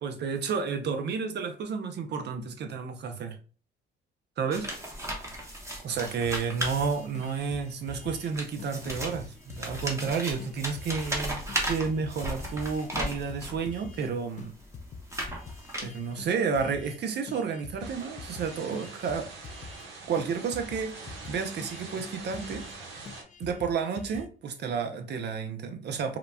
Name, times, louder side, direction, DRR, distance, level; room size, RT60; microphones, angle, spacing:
voice 1, 0.0-3.4 4.4-4.7 5.8-14.5 15.8-19.3 20.1-22.6 23.4-26.2, right 5 dB, 60° right, 0.6 m, -31 dB
sound 1, 4.5-7.4 8.1-13.7 14.3-16.2, right 1 dB, 15° right, 0.9 m, -35 dB
sound 2, 6.2-8.3 8.6-8.7 9.0-11.2 11.5-14.1 14.4-17.0 17.3-19.9 20.2-20.3 20.5-22.8 23.1-24.3, left 5 dB, 40° left, 0.4 m, -45 dB
sound 3, 17.8-23.2, right 3 dB, 75° right, 0.9 m, -44 dB
3.8 x 2.2 x 2.2 m
cardioid pair, 90°, 20 cm